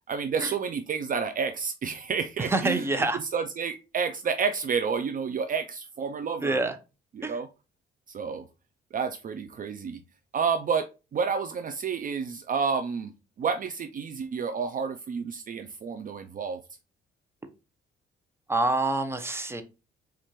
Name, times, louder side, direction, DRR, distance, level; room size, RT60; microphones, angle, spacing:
voice 1, 0.1-2.9 3.3-6.6 7.1-7.5 8.1-8.4 8.9-10.0 10.3-16.6, right 6 dB, 45° right, 8 dB, 0.4 m, -30 dB
voice 2, 2.4-3.2 6.4-6.8 7.2-7.4 18.5-19.6, right 2 dB, 10° right, 8 dB, 0.7 m, -26 dB
4.3 x 2.5 x 4.5 m, 0.30 s
cardioid pair, 90°, 20 cm